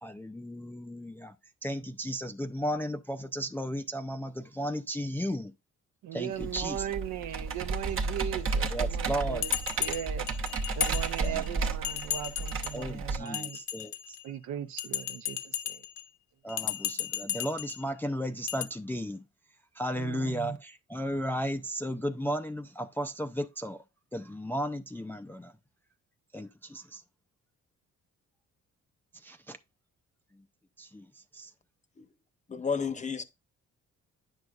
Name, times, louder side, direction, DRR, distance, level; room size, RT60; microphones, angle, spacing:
voice 1, 0.0-1.4 1.6-5.5 6.1-6.9 8.7-9.4 11.2-11.4 12.7-14.2 16.4-19.3 19.7-23.8 24.1-25.6 26.3-27.0 29.1-29.6 30.3-30.4 30.8-31.5, equal, 5° left, 0.4 m, -35 dB
voice 2, 6.0-9.5 9.8-10.3 10.8-13.6 14.2-15.9 19.9-20.6, right 10 dB, 70° right, 0.7 m, -38 dB
Computer keyboard, 6.4-13.2, right 4 dB, 45° right, 0.9 m, -32 dB
Bell, 9.4-11.5 11.8-12.8 13.3-14.3 14.8-16.0 16.5-17.8 18.5-18.6, left 12 dB, 65° left, 0.8 m, -34 dB
voice 3, 32.5-33.2, left 6 dB, 25° left, 0.8 m, -31 dB
9.4 x 6.4 x 2.4 m
cardioid pair, 90°, 30 cm